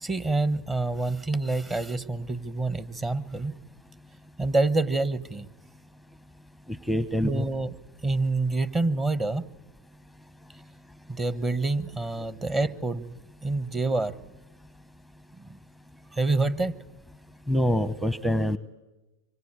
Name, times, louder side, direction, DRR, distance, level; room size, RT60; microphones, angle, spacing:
voice 1, 0.0-3.6 4.4-5.5 7.2-7.7 8.0-9.5 11.1-14.1 15.3-15.5 16.1-16.8, right 2 dB, 20° right, 16 dB, 1.3 m, -27 dB
voice 2, 6.9-7.5 17.5-18.6, equal, ahead, 15 dB, 0.9 m, -25 dB
26.0 x 24.5 x 8.9 m, 1.1 s
hypercardioid pair, 100°, 0 cm